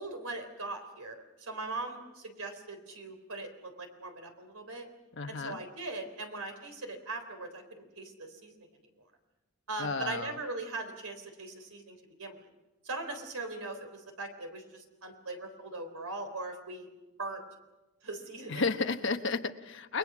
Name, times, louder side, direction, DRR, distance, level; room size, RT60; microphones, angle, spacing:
voice 1, 0.0-4.9 5.3-8.7 9.7-12.4 12.8-16.9 17.2-17.4 18.0-18.6, right 2 dB, 80° right, 5 dB, 3.8 m, -40 dB
voice 2, 5.1-5.6 9.8-10.3 18.5-20.0, left 4 dB, 55° left, 7 dB, 1.2 m, -32 dB
29.5 x 21.0 x 6.1 m, 1.0 s
head